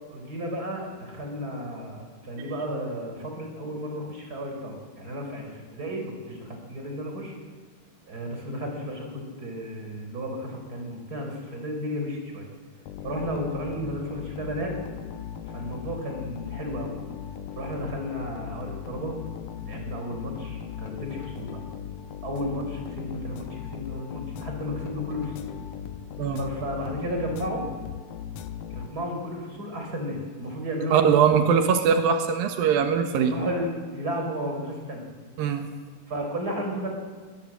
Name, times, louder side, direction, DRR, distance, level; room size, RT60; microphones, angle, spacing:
voice 1, 0.1-7.3 8.1-12.5 13.0-14.7 15.5-16.9 17.6-19.1 19.6-21.6 22.2-25.5 26.3-27.6 28.7-31.1 33.2-35.1 36.1-36.9, equal, 25° right, 2 dB, 5.0 m, -33 dB
sound 1, 12.9-29.3, left 9 dB, 70° left, 2.3 m, -38 dB
voice 2, 30.9-33.3 35.4-35.7, right 7 dB, 90° right, 6 dB, 3.1 m, -21 dB
21.0 x 20.5 x 7.5 m, 1.5 s
omnidirectional pair, 4.0 m